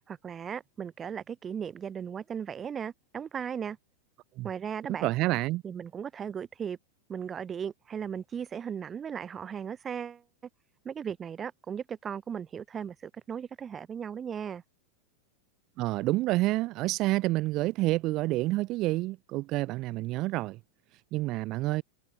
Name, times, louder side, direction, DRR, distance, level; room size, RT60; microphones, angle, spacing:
voice 1, 0.1-3.8 4.4-5.1 5.6-6.8 7.1-10.2 10.8-14.6, right 7 dB, 20° right, 0.8 m, -37 dB
voice 2, 5.0-5.6 15.8-20.6 21.1-21.8, right 19 dB, 40° right, 0.3 m, -28 dB
figure-of-eight pair, 90°, 0 cm